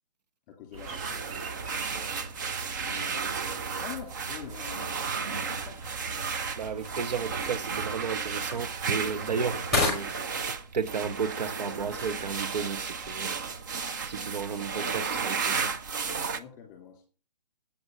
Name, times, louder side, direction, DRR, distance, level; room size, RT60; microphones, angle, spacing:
voice 1, 0.5-1.2 2.9-3.4 3.8-5.8 9.5-9.6 16.3-17.0, left 9 dB, 20° left, 2.7 m, -45 dB
sound 1, 0.7-8.0, right 3 dB, 60° right, 2.2 m, -46 dB
sound 2, 0.8-16.4, right 5 dB, 30° right, 0.5 m, -33 dB
sound 3, 5.4-14.6, left 3 dB, 5° right, 4.0 m, -37 dB
voice 2, 6.6-13.4 14.0-15.8, right 6 dB, 75° right, 0.8 m, -33 dB
8.6 x 6.5 x 6.1 m
hypercardioid pair, 165°, 21 cm